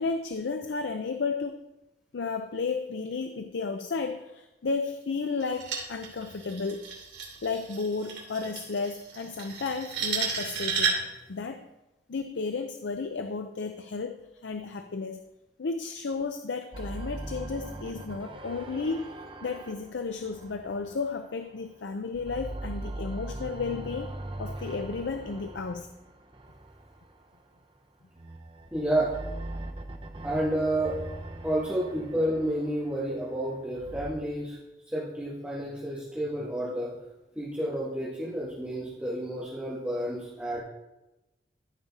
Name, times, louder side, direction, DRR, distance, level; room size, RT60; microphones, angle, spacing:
voice 1, 0.0-1.6 2.1-6.8 7.4-10.9 11.3-11.7 12.1-15.2 15.6-25.9, left 4 dB, 90° left, 7 dB, 0.5 m, -33 dB
sound 1, 5.4-11.2, right 5 dB, 80° right, 2.9 m, -33 dB
sound 2, 16.7-21.7 22.0-27.4 28.1-34.1, right 1 dB, 30° right, 0.8 m, -41 dB
voice 2, 28.7-29.1 30.2-31.0 31.4-34.6 34.9-36.9 37.3-40.6, right 1 dB, 10° right, -8 dB, 1.5 m, -30 dB
14.0 x 5.2 x 4.1 m, 0.99 s
head